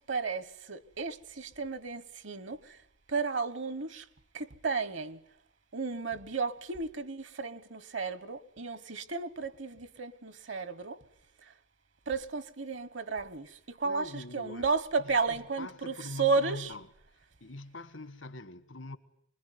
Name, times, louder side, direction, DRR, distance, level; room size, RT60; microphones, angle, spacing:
voice 1, 0.1-2.8 3.1-4.0 4.3-5.2 5.7-11.0 11.4-11.5 12.1-16.7, right 4 dB, 65° right, 1.2 m, -33 dB
voice 2, 13.8-14.7 15.3-16.9 17.4-19.0, left 2 dB, 80° left, 1.4 m, -43 dB
25.5 x 21.0 x 9.4 m
head